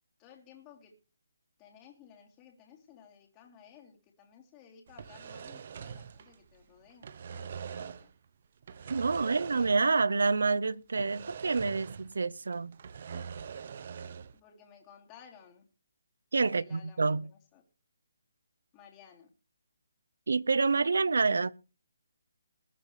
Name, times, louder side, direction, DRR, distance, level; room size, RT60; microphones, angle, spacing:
voice 1, 0.2-1.0 1.6-8.1 8.7-9.8 14.3-15.6 16.5-17.6 18.7-19.3, left 8 dB, 20° left, 3.3 m, -57 dB
sound 1, 4.9-6.6 6.9-8.1 8.6-10.0 10.3-10.4 11.0-12.2 12.5-14.4, right 7 dB, 45° right, 0.9 m, -43 dB
voice 2, 8.9-12.8 16.3-17.3 20.3-21.5, right 4 dB, 75° right, 0.7 m, -28 dB
21.0 x 9.6 x 3.3 m
hypercardioid pair, 160°, 0 cm